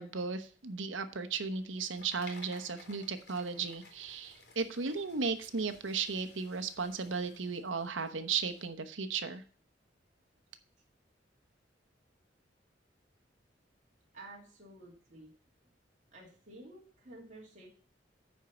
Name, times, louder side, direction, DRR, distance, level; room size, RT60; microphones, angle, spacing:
voice 1, 0.0-9.4, right 5 dB, 85° right, 8 dB, 1.0 m, -35 dB
sound 1, 1.5-8.7, left 3 dB, 55° left, 2.6 m, -57 dB
voice 2, 14.1-15.3 16.1-17.7, right 2 dB, 40° right, -4 dB, 2.6 m, -52 dB
10.0 x 4.5 x 7.0 m, 0.42 s
head